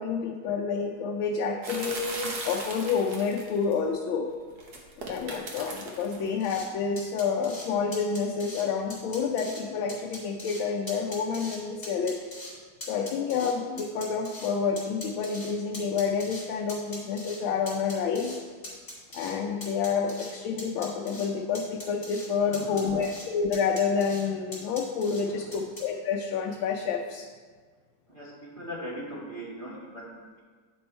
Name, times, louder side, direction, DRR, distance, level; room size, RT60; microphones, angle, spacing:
voice 1, 0.0-4.3 5.1-12.2 12.9-18.4 19.1-27.3, left 5 dB, 80° left, 1 dB, 1.4 m, -29 dB
sound 1, 1.6-3.7 4.6-6.3, right 2 dB, 55° right, 1.6 m, -37 dB
sound 2, 6.4-6.7 7.0-7.7 7.9-8.6 8.9-9.6 9.9-10.6 10.9-11.6 11.8-12.5 12.8-14.5 14.8-16.4 16.7-17.4 17.7-18.4 18.6-19.3 19.6-20.3 20.6-21.3 21.5-22.3 22.5-23.2 23.5-24.2 24.5-25.2 25.5-25.8, left 1 dB, 25° left, 2.3 m, -41 dB
voice 2, 22.4-23.1 25.2-25.6 28.1-30.4, equal, 25° right, -8 dB, 1.9 m, -41 dB
9.4 x 5.4 x 4.3 m, 1.6 s
omnidirectional pair, 2.2 m